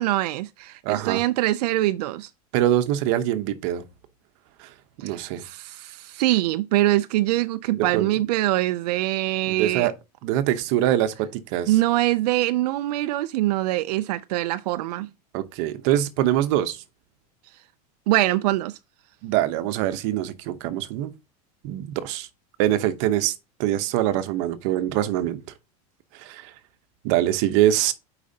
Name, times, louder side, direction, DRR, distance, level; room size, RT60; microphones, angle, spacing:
voice 1, 0.0-2.3 5.0-9.9 11.7-15.1 18.1-18.8, right 16 dB, 80° right, 0.4 m, -23 dB
voice 2, 0.8-1.2 2.5-3.8 4.6-4.7 5.0-5.4 7.7-8.1 9.5-9.9 10.2-11.8 15.3-16.8 19.2-21.1 21.6-22.3 22.6-23.3 23.6-25.4 26.1-26.5 27.0-27.9, right 12 dB, 50° right, 0.9 m, -24 dB
8.5 x 5.0 x 2.8 m
supercardioid pair, 170°, 20 cm